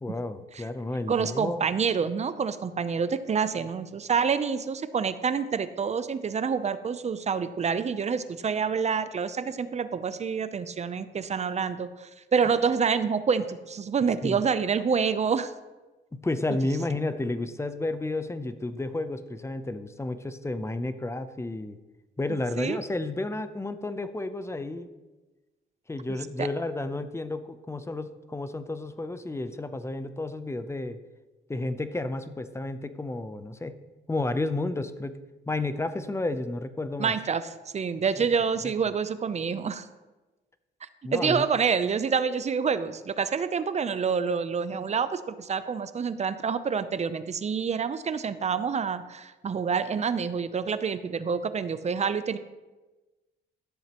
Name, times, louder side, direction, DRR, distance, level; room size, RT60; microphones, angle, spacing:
voice 1, 0.0-1.7 14.2-14.4 16.1-21.8 22.2-24.9 25.9-31.0 31.5-33.8 34.1-35.1 35.5-37.1 38.2-38.3 38.6-38.7 41.0-41.5, left 2 dB, 15° left, 11 dB, 0.6 m, -31 dB
voice 2, 1.1-15.5 22.3-22.8 26.4-26.5 37.0-39.9 41.1-52.4, right 6 dB, 35° right, 12 dB, 0.6 m, -27 dB
13.0 x 7.2 x 3.0 m, 1.2 s
cardioid pair, 90°, 20 cm